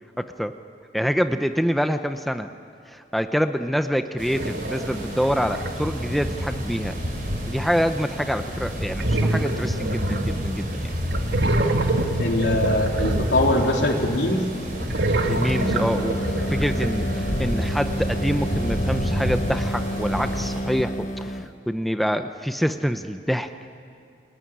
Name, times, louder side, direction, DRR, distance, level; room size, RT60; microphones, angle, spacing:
voice 1, 0.2-0.5 0.9-2.5 2.9-7.0 7.5-10.9 15.2-23.5, equal, ahead, 8 dB, 0.7 m, -26 dB
sound 1, 4.2-20.6, equal, 50° right, 6.0 m, -29 dB
sound 2, 4.3-5.7 6.3-6.7 9.0-10.7 11.1-14.0 14.7-17.3, right 2 dB, 75° right, 1.8 m, -26 dB
voice 2, 12.2-14.4, left 1 dB, 85° left, 1 dB, 3.5 m, -22 dB
sound 3, 15.3-21.5, equal, 45° left, 1.2 m, -30 dB
29.0 x 20.0 x 10.0 m, 2.5 s
head